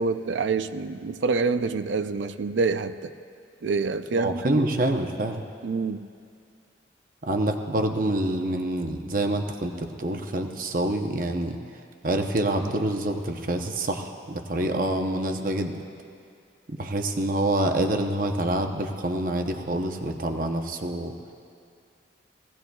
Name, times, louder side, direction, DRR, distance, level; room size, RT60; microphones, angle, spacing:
voice 1, 0.0-3.1 3.6-4.6 5.6-6.0, right 4 dB, 80° right, 11 dB, 0.5 m, -26 dB
voice 2, 4.1-5.4 7.3-11.6 12.0-15.7 16.7-21.1, right 1 dB, 45° right, 4 dB, 0.8 m, -26 dB
20.5 x 16.5 x 2.3 m, 2.3 s
head